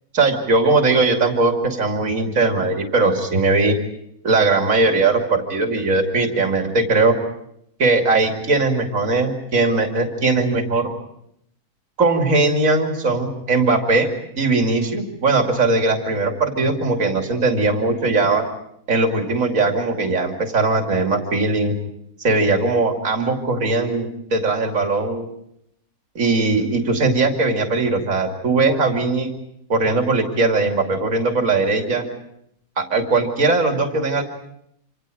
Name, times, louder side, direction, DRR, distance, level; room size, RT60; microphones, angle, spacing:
voice 1, 0.1-3.8 4.2-7.2 7.8-10.9 12.0-14.1 14.4-18.4 18.9-21.8 22.2-25.3 26.1-29.3 29.7-32.1 32.8-34.2, right 3 dB, 55° right, 3 dB, 3.0 m, -19 dB
27.5 x 27.0 x 5.0 m, 0.75 s
omnidirectional pair, 1.7 m